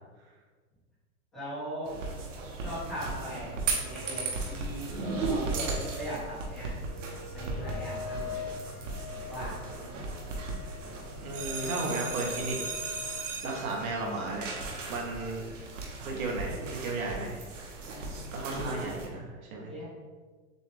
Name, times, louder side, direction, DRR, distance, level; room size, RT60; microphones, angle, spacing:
voice 1, 1.3-1.9 2.6-3.5 3.8-6.7 7.3-8.4 9.3-9.5 18.4-18.9 19.7-19.8, right 1 dB, 5° left, -17 dB, 0.5 m, -39 dB
sound 1, 1.8-19.1, right 3 dB, 65° right, 1.0 m, -36 dB
sound 2, 4.8-13.2, left 8 dB, 75° left, 1.4 m, -44 dB
voice 2, 11.2-12.6 13.4-14.5 14.9-15.4 16.0-17.4 18.3-19.7, right 3 dB, 80° right, -1 dB, 1.2 m, -34 dB
6.8 x 2.3 x 3.4 m, 1.4 s
supercardioid pair, 180°, 41 cm